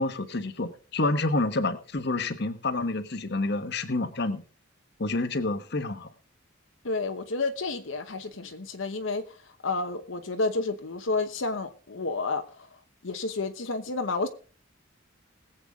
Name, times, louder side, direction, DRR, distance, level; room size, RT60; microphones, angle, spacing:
voice 1, 0.0-4.4 5.0-6.1, left 2 dB, 55° left, 10 dB, 1.2 m, -28 dB
voice 2, 6.8-12.7 13.0-14.3, left 3 dB, 75° left, 6 dB, 1.0 m, -30 dB
20.5 x 8.0 x 3.6 m, 0.39 s
head